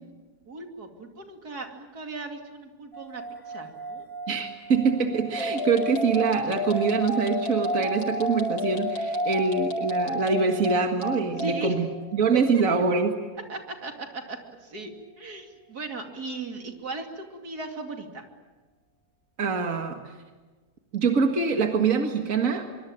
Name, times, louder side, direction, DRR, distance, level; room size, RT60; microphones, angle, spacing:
voice 1, 0.5-4.1 11.4-11.9 12.5-12.6 13.5-14.9 15.2-18.2, right 2 dB, 80° right, 4 dB, 3.2 m, -37 dB
sound 1, 2.9-14.3, right 3 dB, 20° left, 2.2 m, -41 dB
voice 2, 4.3-11.9 12.1-13.2 19.4-20.0 20.9-22.7, right 5 dB, 60° right, 4 dB, 2.3 m, -24 dB
sound 2, 5.3-11.6, left 2 dB, 75° left, 5.5 m, -30 dB
24.5 x 24.0 x 9.0 m, 1.3 s
omnidirectional pair, 1.6 m